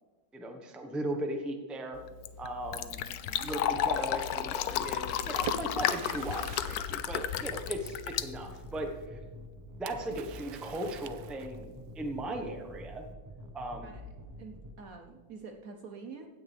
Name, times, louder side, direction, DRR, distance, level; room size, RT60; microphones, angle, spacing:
voice 1, 0.3-2.0 2.4-3.0 3.4-9.2 9.8-13.0 13.5-13.9, right 1 dB, ahead, 3 dB, 0.7 m, -37 dB
Fill (with liquid), 1.9-9.0, left 10 dB, 70° left, 0.9 m, -33 dB
Splash splatter, 4.9-8.1 9.9-11.8, right 10 dB, 80° right, 1.3 m, -45 dB
sound 1, 7.4-14.8, equal, 30° right, 0.3 m, -48 dB
voice 2, 14.4-16.3, right 5 dB, 60° right, 4 dB, 1.0 m, -47 dB
16.0 x 9.6 x 3.4 m, 1.4 s
omnidirectional pair, 2.1 m